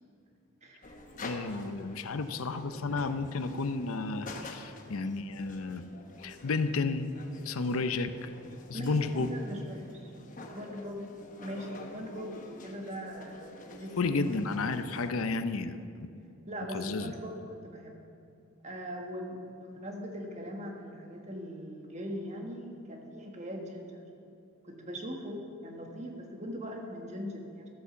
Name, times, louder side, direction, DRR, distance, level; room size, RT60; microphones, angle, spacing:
voice 1, 0.6-0.9 4.7-4.8 8.7-10.1 10.5-11.1 11.4-13.4 13.7-14.1 16.5-17.9 18.6-24.0 24.6-27.7, equal, 30° right, 1 dB, 1.5 m, -40 dB
sound 1, 0.8-15.1, left 2 dB, 35° left, 1.1 m, -48 dB
voice 2, 1.2-5.8 6.2-7.1 7.4-8.3 8.7-9.3 14.0-16.2 16.7-17.1, left 3 dB, 80° left, 10 dB, 0.6 m, -32 dB
13.0 x 8.3 x 7.0 m, 2.5 s
head